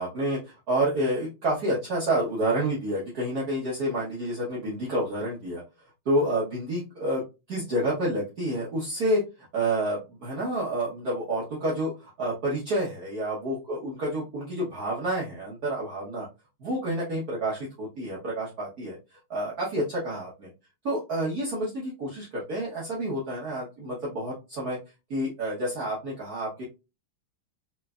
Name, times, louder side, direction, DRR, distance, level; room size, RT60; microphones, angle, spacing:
voice 1, 0.0-5.6 6.0-9.2 9.5-16.3 16.6-19.0 19.3-20.5 20.8-24.8 25.1-26.6, right 1 dB, 50° right, -6 dB, 1.5 m, -29 dB
4.5 x 3.3 x 2.3 m, 0.27 s
omnidirectional pair, 2.3 m